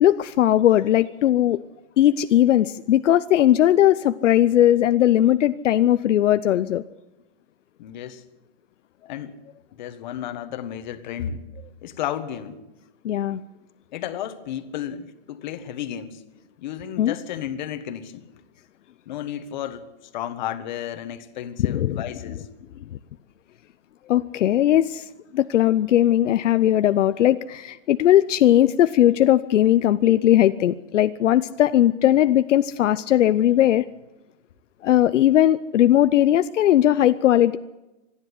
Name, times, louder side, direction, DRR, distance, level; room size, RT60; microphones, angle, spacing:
voice 1, 0.0-1.6 2.0-6.8 13.0-13.4 17.0-17.1 21.6-22.0 24.1-25.1 25.3-33.8 34.8-37.6, left 12 dB, 70° left, 12 dB, 0.8 m, -18 dB
voice 2, 7.8-8.2 9.1-9.4 9.7-11.4 11.8-12.6 13.9-16.2 16.6-18.2 19.1-19.8 20.1-22.5, left 10 dB, 35° left, 10 dB, 1.6 m, -33 dB
26.5 x 10.5 x 9.8 m, 1.0 s
hypercardioid pair, 175°, 38 cm